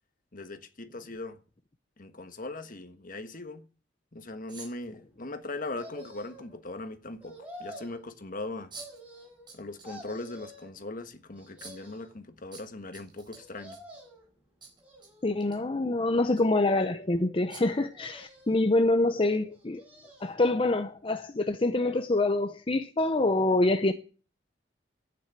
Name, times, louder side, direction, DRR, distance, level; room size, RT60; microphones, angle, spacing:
voice 1, 0.3-1.4 2.0-3.7 4.1-8.7 9.5-13.8, left 2 dB, 50° left, 1.4 m, -40 dB
sound 1, 4.5-4.9 6.4-6.5 8.7-9.0 9.5-9.9 10.3-10.4 11.6-11.9 12.5-14.0 14.6-15.1 15.4-15.6 16.3-16.4 17.5-17.8, right 4 dB, 25° right, 4.0 m, -47 dB
sound 2, 5.7-6.6 7.2-8.0 8.7-9.5 9.8-10.7 11.3-12.1 13.3-14.3 14.8-15.5 16.1-16.9 17.9-18.7 19.5-20.4 20.8-20.9, equal, 10° right, 7.2 m, -49 dB
voice 2, 15.2-19.8 20.2-23.9, left 2 dB, 30° left, 0.7 m, -26 dB
11.5 x 9.6 x 8.9 m
head